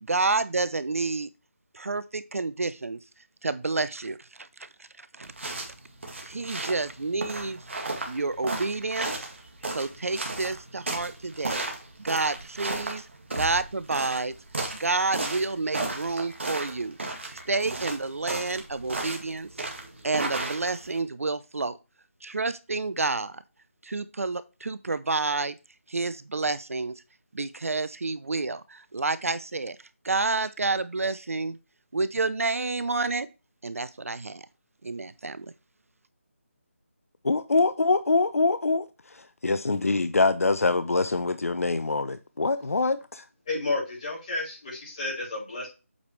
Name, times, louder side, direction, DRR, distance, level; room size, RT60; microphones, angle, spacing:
voice 1, 0.0-1.3 1.7-3.0 3.4-4.7 5.0-5.3 6.2-7.6 8.0-9.1 9.7-11.6 12.0-13.1 13.3-14.3 14.7-17.0 17.3-19.5 20.0-21.8 22.2-23.4 23.8-25.5 25.9-26.9 27.3-29.8 30.0-31.6 31.9-33.3 33.6-34.5 34.8-35.5, right 3 dB, 75° right, 0.7 m, -29 dB
sound 1, 5.2-21.0, right 2 dB, 55° right, 2.0 m, -34 dB
voice 2, 37.2-38.8 39.4-43.2, left 3 dB, 75° left, 0.7 m, -24 dB
voice 3, 43.5-45.7, left 2 dB, 25° left, 4.7 m, -31 dB
8.2 x 5.1 x 3.2 m
figure-of-eight pair, 175°, 8 cm